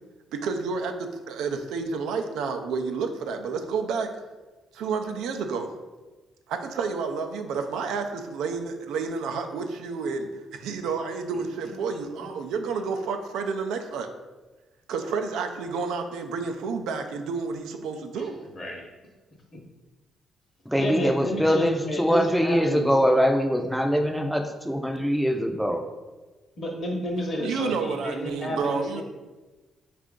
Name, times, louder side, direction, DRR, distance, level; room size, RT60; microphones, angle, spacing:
voice 1, 0.3-4.1 4.7-5.7 6.5-14.1 14.9-18.4 27.3-29.0, right 5 dB, 85° right, 6 dB, 0.4 m, -30 dB
voice 2, 18.5-18.9 20.8-22.9 26.6-29.0, equal, 45° left, 1 dB, 0.9 m, -31 dB
voice 3, 20.7-25.8, equal, ahead, 4 dB, 0.4 m, -23 dB
4.4 x 2.5 x 3.6 m, 1.2 s
cardioid pair, 90°, 0 cm